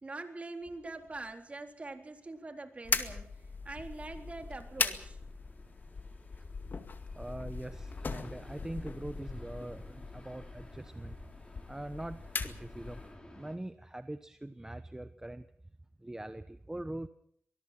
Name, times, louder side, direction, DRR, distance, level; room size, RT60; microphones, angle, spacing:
voice 1, 0.0-3.3 3.6-5.2, right 2 dB, 35° right, 5 dB, 3.8 m, -43 dB
sound 1, 0.6-13.6, left 1 dB, 20° left, 5.9 m, -55 dB
sound 2, 2.8-13.2, left 4 dB, 55° left, 2.1 m, -39 dB
voice 2, 7.1-11.2 11.7-13.0 13.3-15.5 16.0-17.1, right 1 dB, 15° right, 10 dB, 1.0 m, -42 dB
24.5 x 21.0 x 6.0 m, 0.67 s
cardioid pair, 85°, 4 cm